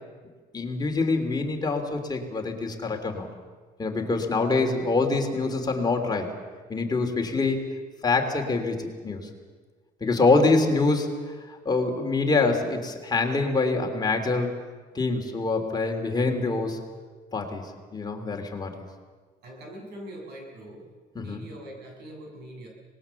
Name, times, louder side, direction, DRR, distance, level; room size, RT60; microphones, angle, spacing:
voice 1, 0.5-3.3 3.8-6.3 6.7-7.6 8.0-9.3 10.0-14.6 14.9-16.8 17.3-18.7 21.1-21.4, left 3 dB, 25° left, 3 dB, 3.1 m, -25 dB
voice 2, 19.4-20.9 21.1-22.7, right 1 dB, 75° right, 1 dB, 7.7 m, -42 dB
25.0 x 20.0 x 7.1 m, 1.4 s
cardioid pair, 110°, 17 cm